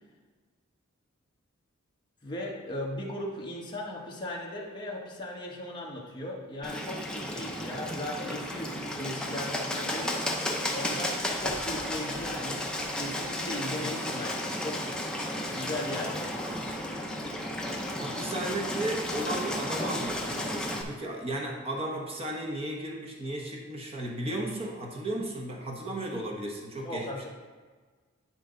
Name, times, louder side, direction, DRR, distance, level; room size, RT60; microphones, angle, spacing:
voice 1, 2.2-10.3 10.7-12.6 13.0-15.0 15.5-16.2 26.8-27.3, left 1 dB, 20° left, -3 dB, 1.4 m, -37 dB
Bird, 6.6-20.8, left 1 dB, 5° left, 0.7 m, -33 dB
voice 2, 18.0-27.0, right 1 dB, 25° right, -1 dB, 1.1 m, -34 dB
10.0 x 4.5 x 3.9 m, 1.4 s
head